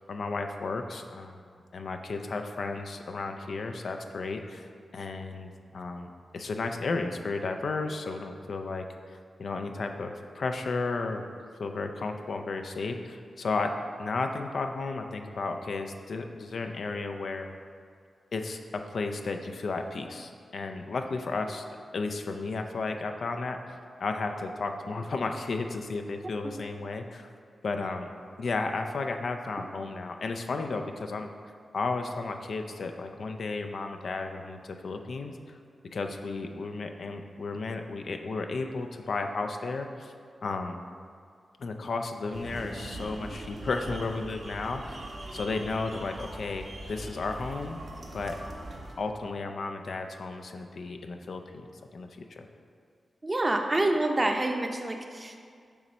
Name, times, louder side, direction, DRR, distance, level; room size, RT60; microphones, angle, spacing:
voice 1, 0.1-1.4 1.7-8.9 9.4-11.3 11.6-13.7 14.0-17.5 18.3-21.7 21.9-23.6 24.0-27.3 27.6-28.1 28.4-31.3 31.7-35.6 35.9-40.1 40.4-40.8 41.6-45.0 45.3-47.8 48.1-48.4 49.0-51.7 51.9-52.5, left 3 dB, 70° left, 5 dB, 0.4 m, -33 dB
Dart Train Arrives, 42.3-48.9, right 1 dB, 70° right, 1.0 m, -41 dB
voice 2, 53.2-55.5, right 1 dB, 35° right, 3 dB, 0.7 m, -27 dB
6.9 x 3.0 x 5.3 m, 2.1 s
cardioid pair, 45°, 0 cm